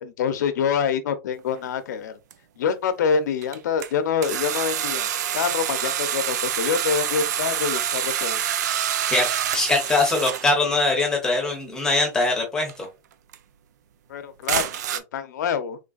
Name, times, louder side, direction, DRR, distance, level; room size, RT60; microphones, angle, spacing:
voice 1, 0.0-2.2 2.6-8.4 14.1-15.8, left 6 dB, 90° left, 0.7 m, -26 dB
sound 1, 1.5-1.7 2.3-2.4 3.4-3.9 4.2-10.6 12.7-12.8 13.3-13.4 14.5-15.0, right 10 dB, 80° right, 0.5 m, -26 dB
voice 2, 9.1-12.9, left 3 dB, 5° left, 0.9 m, -22 dB
3.8 x 3.3 x 2.4 m
supercardioid pair, 175°, 9 cm